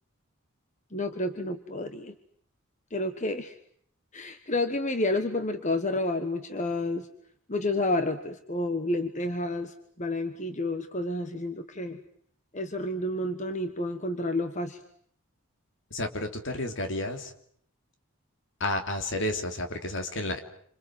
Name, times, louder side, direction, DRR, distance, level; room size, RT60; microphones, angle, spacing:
voice 1, 0.9-2.1 2.9-3.6 4.1-7.1 7.5-12.0 12.5-14.8, left 2 dB, 35° left, 8 dB, 1.4 m, -30 dB
voice 2, 15.9-17.3 18.6-20.4, left 1 dB, 60° left, 6 dB, 3.3 m, -31 dB
28.0 x 26.5 x 7.8 m, 0.66 s
head